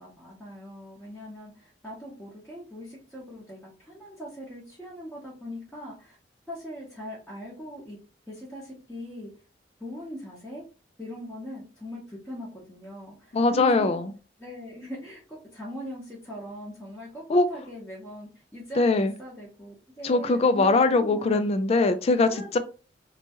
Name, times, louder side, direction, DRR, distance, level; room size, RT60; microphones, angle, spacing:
voice 1, 0.0-6.2 6.5-8.0 8.3-9.3 9.8-10.6 11.0-14.0 14.4-21.5 22.2-22.6, equal, 5° left, 0.9 m, -41 dB
voice 2, 13.3-14.1 17.3-17.5 18.8-19.1 20.0-22.6, left 3 dB, 35° left, 0.4 m, -22 dB
2.8 x 2.2 x 2.8 m
head